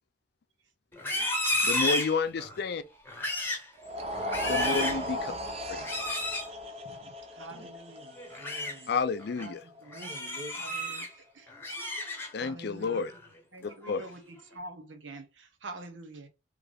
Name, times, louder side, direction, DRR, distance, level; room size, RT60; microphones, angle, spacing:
Livestock farm animals working animals, 0.9-2.6 3.1-3.7 4.1-5.1 5.8-6.5 8.2-8.7 9.2-9.5 9.9-11.1 11.5-12.5 12.9-13.2 13.7-14.1, left 1 dB, 10° left, 0.9 m, -32 dB
voice 1, 1.6-2.8 4.4-5.3 5.7-5.9 8.9-9.7 12.3-13.1 13.6-14.1, left 5 dB, 60° left, 0.4 m, -30 dB
sound 1, 3.8-10.0, equal, 35° right, 0.7 m, -36 dB
voice 2, 4.7-5.4 6.8-8.0 9.4-9.5 9.8-10.0 10.5-11.1 11.4-11.5 12.4-13.0 13.5-14.2 14.5-16.3, right 2 dB, 85° right, 0.9 m, -45 dB
voice 3, 7.5-8.9 9.9-10.5, right 1 dB, 55° right, 1.1 m, -47 dB
3.4 x 3.2 x 3.8 m
head